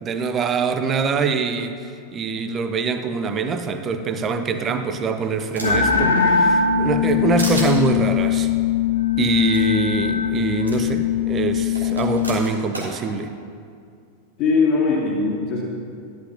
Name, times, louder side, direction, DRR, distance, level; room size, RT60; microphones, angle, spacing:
voice 1, 0.0-8.5 9.2-13.4, right 5 dB, 25° right, 8 dB, 0.5 m, -24 dB
sound 1, 4.6-5.9 6.4-7.1 7.4-7.7 9.2-9.3 9.5-9.6 10.7-10.8 11.7-12.9, right 1 dB, 80° right, 1.6 m, -32 dB
sound 2, 5.6-12.3, left 7 dB, 75° left, 0.7 m, -21 dB
voice 2, 14.4-15.6, left 4 dB, 35° left, -4 dB, 2.0 m, -20 dB
11.0 x 8.3 x 2.9 m, 2.3 s
figure-of-eight pair, 90°, 0 cm